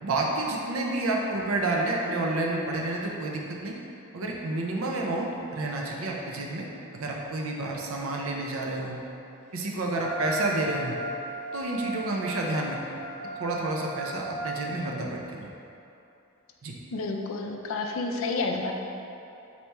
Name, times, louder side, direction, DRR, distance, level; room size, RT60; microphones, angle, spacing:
voice 1, 0.0-3.7 4.1-6.7 6.9-9.0 9.5-11.0 11.5-12.8 13.4-15.5 16.6-16.7, right 2 dB, 70° right, -1 dB, 0.5 m, -29 dB
Wind instrument woodwind instrument, 9.9-14.5, right 1 dB, 35° right, 0.9 m, -37 dB
voice 2, 16.9-18.7, left 3 dB, 65° left, 2 dB, 0.4 m, -30 dB
4.2 x 3.0 x 3.4 m, 2.8 s
head